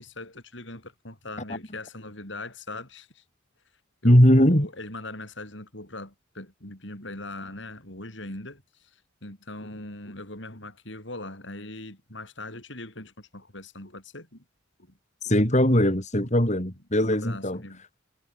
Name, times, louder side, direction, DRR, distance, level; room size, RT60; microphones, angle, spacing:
voice 1, 0.0-3.2 4.0-8.9 9.2-14.4 14.8-14.9 15.3-15.4 16.2-16.3 17.1-17.8, left 2 dB, 60° left, 7.5 m, -40 dB
voice 2, 4.0-4.7 15.2-17.6, equal, 35° left, 5.9 m, -20 dB
head